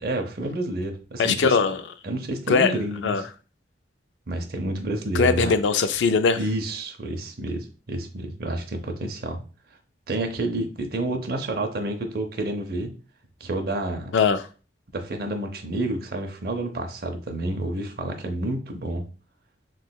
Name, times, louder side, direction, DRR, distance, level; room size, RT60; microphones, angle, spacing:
voice 1, 0.0-1.6 2.0-3.2 4.3-5.5 6.4-9.4 10.1-12.9 13.4-14.1 14.9-19.1, right 1 dB, 60° right, 0.6 m, -29 dB
voice 2, 1.2-1.8 2.5-2.7 3.0-3.2 5.1-6.4 14.1-14.4, left 5 dB, 90° left, 0.4 m, -20 dB
3.7 x 3.0 x 2.3 m
head